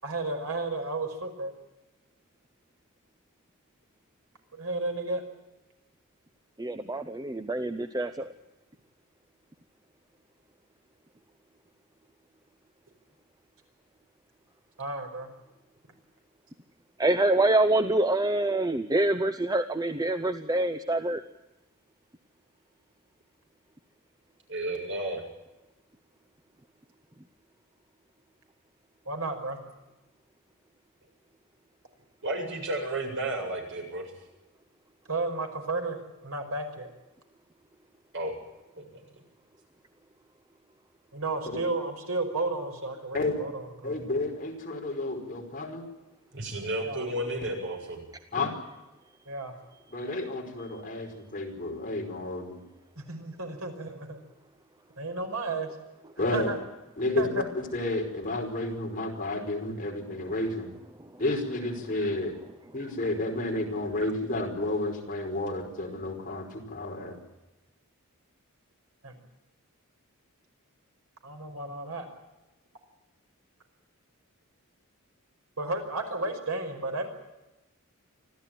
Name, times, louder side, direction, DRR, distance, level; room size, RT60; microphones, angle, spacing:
voice 1, 0.0-1.5 4.5-5.2 14.8-15.3 29.1-29.6 35.1-36.0 36.2-36.9 41.1-44.0 46.8-47.0 49.3-49.5 53.0-54.2 55.0-55.7 56.3-56.6 57.2-57.5 69.0-69.2 71.2-72.1 75.6-77.1, right 2 dB, 75° right, 4 dB, 5.5 m, -33 dB
voice 2, 6.6-8.3 17.0-21.2, right 2 dB, 15° right, 9 dB, 0.8 m, -26 dB
voice 3, 24.5-25.2 32.2-34.1 38.1-38.3 38.8-38.9 46.3-48.1, right 1 dB, 60° right, 2 dB, 7.5 m, -32 dB
voice 4, 43.8-45.8 48.3-48.5 49.9-52.6 56.2-56.5 57.0-57.3 57.5-60.7 61.2-62.4 62.7-67.2, left 2 dB, 40° left, 1 dB, 5.2 m, -31 dB
25.5 x 15.5 x 9.3 m, 1.0 s
head